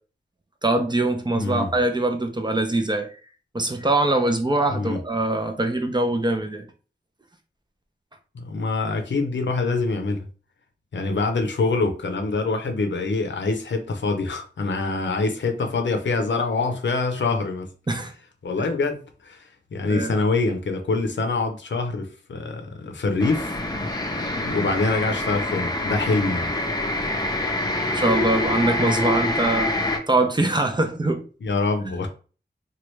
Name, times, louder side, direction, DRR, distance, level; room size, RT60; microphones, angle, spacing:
voice 1, 0.6-3.1 3.5-6.7 17.9-18.1 18.6-18.7 19.9-20.1 27.9-29.7 30.1-31.2, right 2 dB, 25° right, 0.6 m, -23 dB
voice 2, 1.3-1.7 4.7-5.0 8.3-10.3 10.9-17.7 18.4-23.5 23.8-23.9 24.2-26.5 31.4-32.1, left 3 dB, 85° left, 0.6 m, -25 dB
sound 1, 23.2-30.0, left 1 dB, 20° left, 0.6 m, -26 dB
3.1 x 2.3 x 3.1 m
wide cardioid pair, 60°, 18 cm